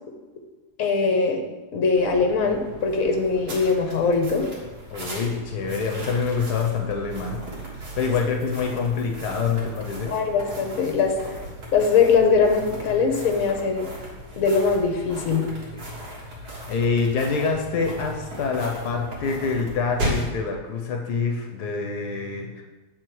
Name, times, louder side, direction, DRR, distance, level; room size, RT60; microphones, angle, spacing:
voice 1, 0.8-1.4 1.7-4.5 10.1-11.1 11.7-13.9 14.3-15.5, left 5 dB, 60° left, 3 dB, 1.3 m, -21 dB
sound 1, 1.9-20.4, equal, 85° right, 2.2 m, -36 dB
voice 2, 4.9-7.4 8.0-10.1 15.7-15.8 16.4-22.6, left 5 dB, 80° left, 2 dB, 1.3 m, -26 dB
7.7 x 4.3 x 4.6 m, 1.2 s
omnidirectional pair, 1.7 m